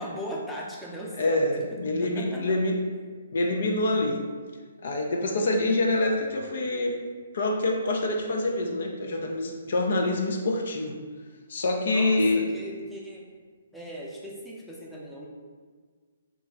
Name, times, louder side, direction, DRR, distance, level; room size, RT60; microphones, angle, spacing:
voice 1, 0.0-1.4 2.2-2.4 11.9-13.2 13.7-15.3, equal, ahead, -5 dB, 0.6 m, -38 dB
voice 2, 1.1-2.8 3.3-4.2 4.8-7.0 7.3-11.0 11.5-12.5, left 2 dB, 60° left, 2 dB, 0.4 m, -26 dB
3.0 x 2.3 x 3.7 m, 1.5 s
figure-of-eight pair, 135°, 0 cm